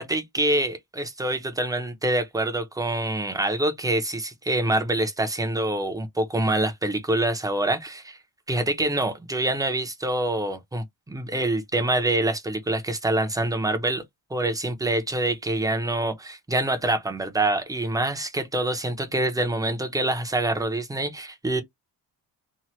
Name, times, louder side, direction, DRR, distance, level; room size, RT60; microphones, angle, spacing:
voice 1, 0.0-8.2 8.5-14.0 14.3-21.6, right 1 dB, 10° right, 0.5 m, -26 dB
2.8 x 2.1 x 3.0 m
wide cardioid pair, 155°, 45 cm